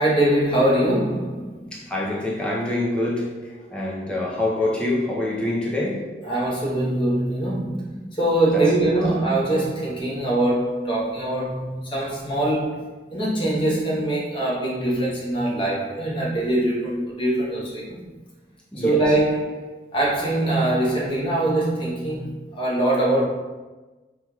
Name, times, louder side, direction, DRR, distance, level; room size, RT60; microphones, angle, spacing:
voice 1, 0.0-1.6 3.6-3.7 6.2-18.0 18.8-23.3, right 1 dB, 30° left, -5 dB, 0.9 m, -23 dB
voice 2, 1.7-3.3 3.7-6.1 8.5-8.6 18.7-19.0, left 2 dB, 5° left, -4 dB, 0.6 m, -25 dB
3.5 x 2.9 x 2.3 m, 1.2 s
head